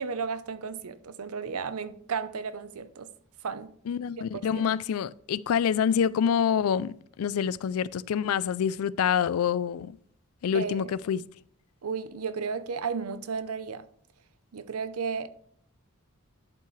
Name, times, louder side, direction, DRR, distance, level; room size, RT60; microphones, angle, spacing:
voice 1, 0.0-3.1 3.4-3.7 4.3-4.7 10.5-10.9 11.8-13.9 14.5-15.3, right 5 dB, 90° right, 0.7 m, -33 dB
voice 2, 3.9-10.0 10.4-11.2, left 8 dB, 75° left, 0.3 m, -26 dB
11.0 x 5.6 x 3.2 m
head